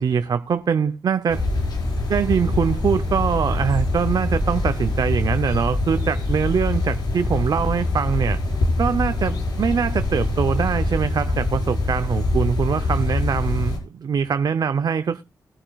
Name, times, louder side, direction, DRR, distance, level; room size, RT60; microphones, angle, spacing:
voice 1, 0.0-1.4 2.1-8.4 8.8-15.2, right 6 dB, 65° right, 0.6 m, -23 dB
sound 1, 1.3-13.8, left 2 dB, 80° left, 5.0 m, -24 dB
20.0 x 8.8 x 2.3 m
wide cardioid pair, 90°, 7 cm